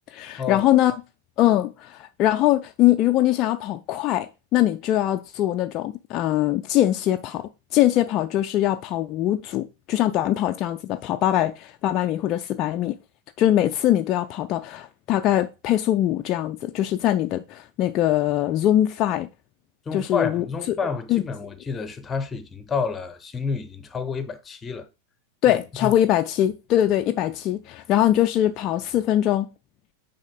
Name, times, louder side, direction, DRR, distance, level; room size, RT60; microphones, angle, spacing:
voice 1, 0.1-0.9 1.4-13.0 13.4-19.3 19.9-20.4 21.1-21.2 25.4-29.5, left 13 dB, 35° left, 0.4 m, -22 dB
voice 2, 19.9-24.9 25.5-26.0, left 5 dB, 15° left, 0.8 m, -29 dB
6.3 x 4.2 x 3.7 m
figure-of-eight pair, 90°, 0 cm